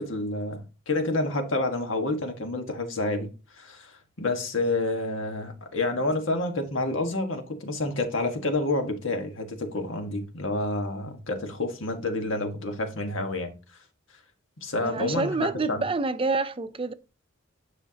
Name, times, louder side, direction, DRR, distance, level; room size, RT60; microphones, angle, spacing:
voice 1, 0.0-3.3 3.6-3.9 4.2-13.5 14.6-15.8, left 2 dB, 90° left, 1.5 m, -29 dB
voice 2, 14.8-16.9, right 3 dB, 30° right, 0.5 m, -27 dB
9.9 x 5.8 x 2.8 m
head